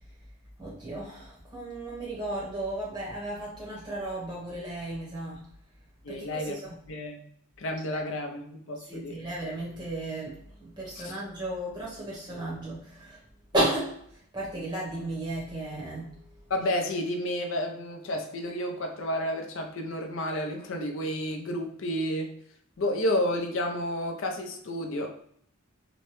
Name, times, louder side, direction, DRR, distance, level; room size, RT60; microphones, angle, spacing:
voice 1, 0.6-5.4 6.1-6.8 7.9-8.0 8.9-13.2 13.5-14.0 14.3-16.1, right 1 dB, 20° right, -6 dB, 1.0 m, -34 dB
voice 2, 6.0-6.6 6.9-7.2 7.6-9.2 11.0-11.1 16.5-22.3 22.8-25.1, left 1 dB, 60° left, 3 dB, 0.5 m, -31 dB
2.9 x 2.1 x 3.0 m, 0.67 s
head